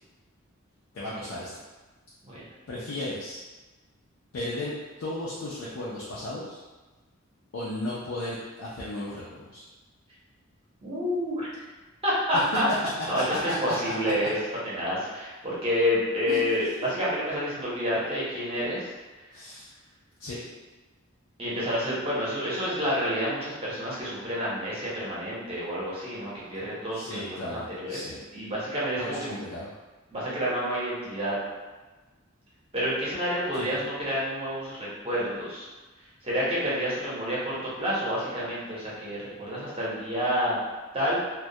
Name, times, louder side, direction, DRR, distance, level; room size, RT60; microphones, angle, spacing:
voice 1, 0.9-1.5 2.7-3.4 4.3-6.6 7.5-9.6 13.1-13.9 16.3-16.7 19.3-19.7 20.2-20.4 26.9-28.2 29.0-29.7 33.6-33.8, left 1 dB, 80° left, -8 dB, 0.5 m, -35 dB
voice 2, 10.8-11.5 12.0-12.7 13.1-14.4 14.6-18.9 21.4-28.0 28.3-29.3 30.1-31.4 32.7-35.7 36.2-40.6 40.9-41.2, equal, 30° right, -8 dB, 0.7 m, -29 dB
2.2 x 2.1 x 2.7 m, 1.2 s
head